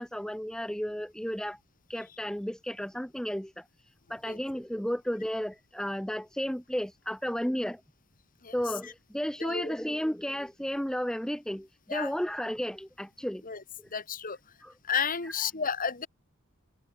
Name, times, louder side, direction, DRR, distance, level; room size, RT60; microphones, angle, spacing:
voice 1, 0.0-1.6 1.9-3.6 4.1-7.8 8.5-13.4 13.8-13.9 14.6-14.7 15.2-15.3, equal, 5° left, 1.1 m, -33 dB
voice 2, 9.4-9.8 11.9-12.1 13.5-13.6 13.9-14.4 14.9-16.1, left 6 dB, 40° left, 2.1 m, -31 dB
head